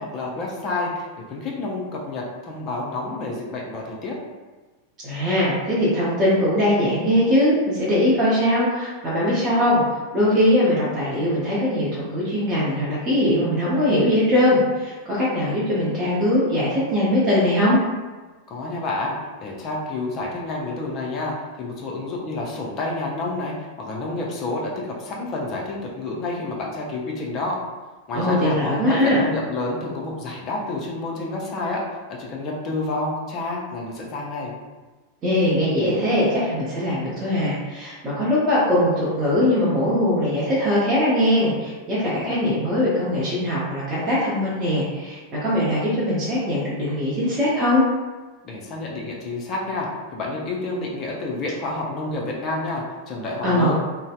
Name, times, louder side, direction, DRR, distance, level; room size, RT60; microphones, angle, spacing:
voice 1, 0.0-4.2 18.5-27.6 28.1-28.6 28.9-31.8 32.1-34.5 48.4-53.8, left 2 dB, 35° left, -2 dB, 0.5 m, -29 dB
voice 2, 5.0-17.8 28.1-29.2 35.2-47.8 53.4-53.7, left 1 dB, 25° right, -8 dB, 0.6 m, -21 dB
2.6 x 2.0 x 2.3 m, 1.2 s
figure-of-eight pair, 90°, 0 cm